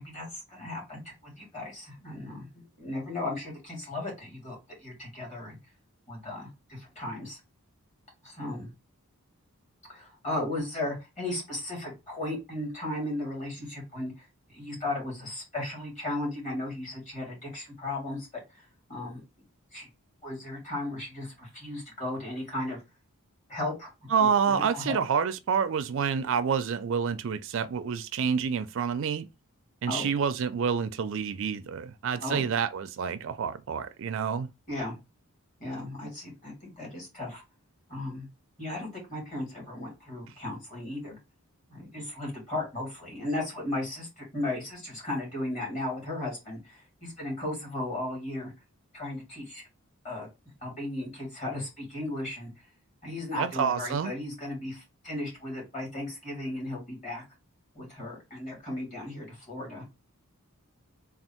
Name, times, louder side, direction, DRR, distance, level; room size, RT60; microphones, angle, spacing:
voice 1, 0.0-5.6 6.1-7.4 8.2-8.7 9.9-14.1 14.5-18.3 18.9-19.2 19.7-19.9 20.2-22.8 23.5-23.9 24.2-25.0 29.9-30.1 32.2-32.5 34.7-35.0 35.6-37.4 37.9-38.3 38.6-41.2 41.7-48.5 48.9-49.6 50.0-50.3 50.6-52.5 53.0-57.2 57.7-59.8, left 1 dB, 35° left, 2.3 m, -36 dB
voice 2, 24.1-29.3 29.8-34.5 53.4-54.1, right 6 dB, 60° right, 0.4 m, -28 dB
3.5 x 2.3 x 4.3 m
head